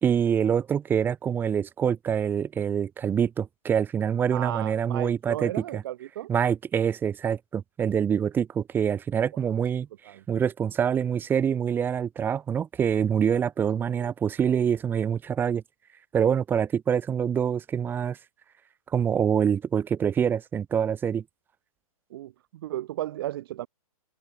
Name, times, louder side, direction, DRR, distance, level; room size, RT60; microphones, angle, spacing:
voice 1, 0.0-5.8 6.3-9.9 10.3-15.6 16.1-18.2 18.9-21.2, right 8 dB, 10° right, 1.8 m, -25 dB
voice 2, 4.3-6.3 9.5-9.6 10.1-10.2 14.0-14.1 22.1-23.7, right 14 dB, 40° right, 1.3 m, -34 dB
hypercardioid pair, 155°, 19 cm